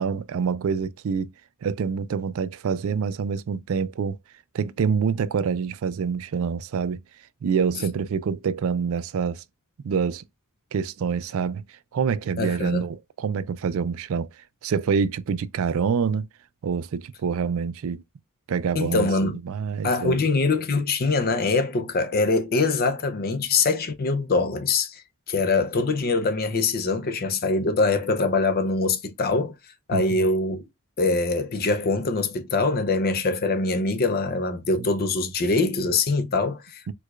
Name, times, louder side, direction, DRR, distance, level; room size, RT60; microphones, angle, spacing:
voice 1, 0.0-1.3 1.6-4.2 4.5-7.0 7.4-9.4 9.8-10.2 10.7-11.6 11.9-16.3 16.6-18.0 18.5-20.2 29.9-30.2 34.8-34.9 36.9-37.0, right 6 dB, 65° right, 0.4 m, -26 dB
voice 2, 12.4-12.9 18.7-19.3 19.8-25.0 25.3-29.5 29.9-30.7 31.0-36.9, left 3 dB, 45° left, 0.6 m, -23 dB
4.5 x 2.3 x 2.4 m
head